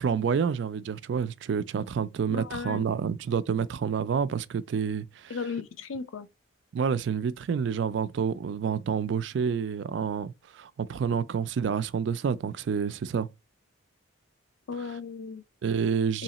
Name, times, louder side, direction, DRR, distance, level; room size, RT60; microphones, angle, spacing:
voice 1, 0.0-5.3 6.7-13.3 15.6-16.2, right 6 dB, 60° right, 0.3 m, -28 dB
voice 2, 2.3-2.8 5.3-6.3 14.7-15.4 16.1-16.2, left 5 dB, 75° left, 0.4 m, -35 dB
3.1 x 2.8 x 4.0 m
head